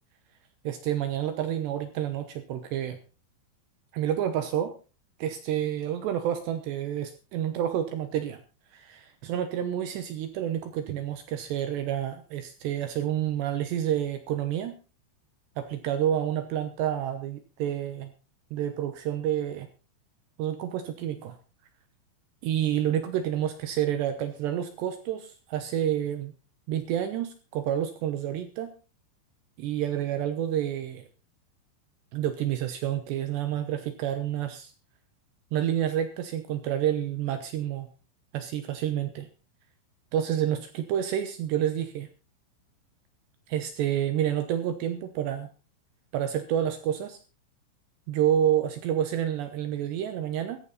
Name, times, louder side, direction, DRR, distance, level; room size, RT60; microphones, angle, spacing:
voice 1, 0.6-3.0 3.9-4.7 5.2-8.4 8.7-14.8 15.6-18.1 18.5-19.7 20.4-21.4 22.4-26.3 26.7-28.7 29.6-31.1 32.1-34.7 35.5-37.9 38.3-39.3 40.1-42.1 43.5-45.5 46.1-47.2 48.1-50.6, right 10 dB, 70° right, 8 dB, 2.9 m, -29 dB
15.0 x 14.0 x 4.1 m, 0.34 s
omnidirectional pair, 5.7 m